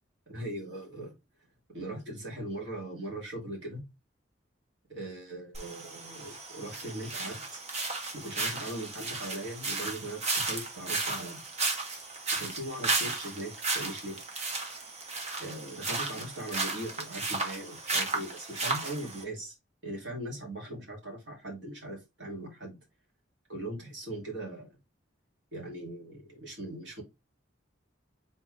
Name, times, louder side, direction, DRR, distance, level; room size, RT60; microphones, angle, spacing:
voice 1, 0.3-1.1 1.7-3.8 4.9-7.6 8.1-11.4 12.3-14.2 15.4-19.6 19.8-22.8 23.5-24.8 25.5-27.0, right 1 dB, 70° right, 2.4 m, -40 dB
sound 1, 5.5-19.2, right 3 dB, 35° right, 1.2 m, -34 dB
4.2 x 4.0 x 3.2 m
head